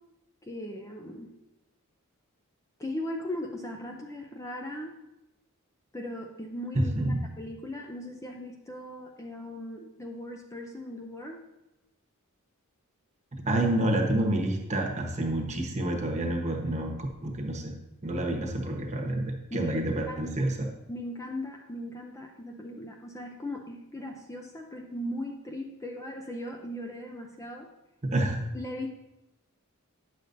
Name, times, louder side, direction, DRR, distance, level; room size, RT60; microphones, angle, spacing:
voice 1, 0.4-1.3 2.8-4.9 5.9-11.4 19.5-19.7 20.1-20.5 20.9-27.7 28.5-28.9, left 1 dB, 15° left, 2 dB, 0.5 m, -38 dB
voice 2, 6.7-7.3 13.4-17.7 18.0-20.7 28.0-28.4, right 1 dB, 30° right, 1 dB, 1.1 m, -28 dB
9.6 x 6.6 x 2.6 m, 0.97 s
head